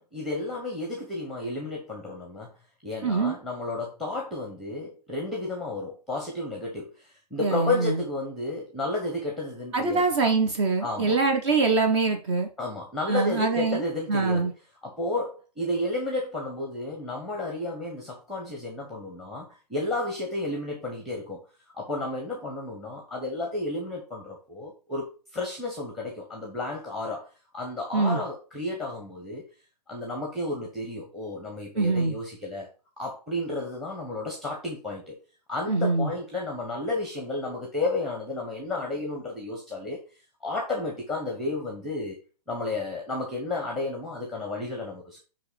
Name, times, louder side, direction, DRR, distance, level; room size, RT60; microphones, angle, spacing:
voice 1, 0.0-2.5 2.8-10.0 10.8-11.2 12.6-14.5 14.8-21.4 21.7-27.3 27.5-29.4 29.9-32.7 33.0-35.1 35.5-40.0 40.4-42.1 42.5-45.2, left 2 dB, ahead, 2 dB, 0.9 m, -32 dB
voice 2, 3.0-3.4 7.4-8.0 9.7-12.5 13.1-13.8 14.1-14.5 27.9-28.2 31.8-32.1 35.7-36.1, right 4 dB, 40° right, 5 dB, 0.9 m, -24 dB
7.9 x 3.1 x 4.9 m, 0.35 s
hypercardioid pair, 140°, 21 cm